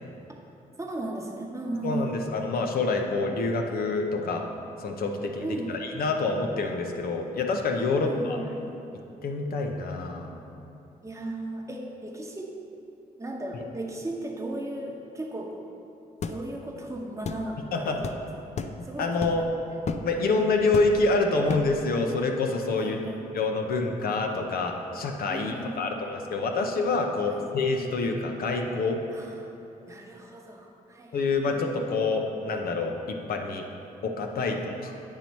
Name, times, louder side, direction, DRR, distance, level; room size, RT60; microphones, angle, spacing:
voice 1, 0.8-2.1 5.4-5.7 8.0-8.7 11.0-12.5 13.2-15.6 16.2-19.5 20.1-20.3 22.8-23.2 25.3-26.0 27.3-27.5 29.1-29.5 29.9-31.6 34.4-34.6, right 1 dB, 20° right, 0 dB, 0.9 m, -36 dB
voice 2, 1.8-4.4 4.8-8.4 9.2-10.4 17.7-18.0 18.8-19.4 20.0-23.0 23.3-29.0 31.1-33.6 34.0-34.9, left 3 dB, 75° left, 3 dB, 0.7 m, -27 dB
sound 1, 16.2-16.4 17.2-17.4 18.0-18.2 18.6-18.8 19.2-19.5 19.9-20.1 20.7-21.1 21.5-21.8, left 5 dB, 45° left, 0.4 m, -32 dB
8.7 x 3.0 x 5.3 m, 2.9 s
cardioid pair, 85°, 16 cm